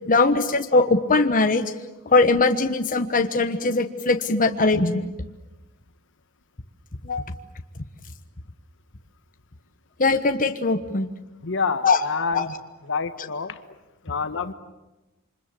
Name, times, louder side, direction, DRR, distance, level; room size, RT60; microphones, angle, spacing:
voice 1, 0.1-1.7 2.0-5.1 7.0-7.4 10.0-11.1 11.8-12.0 12.3-12.5, left 3 dB, 40° left, 6 dB, 1.3 m, -21 dB
voice 2, 11.4-12.5 12.9-13.6 14.0-14.5, left 5 dB, 55° left, 10 dB, 1.4 m, -27 dB
28.0 x 25.5 x 7.7 m, 1.1 s
head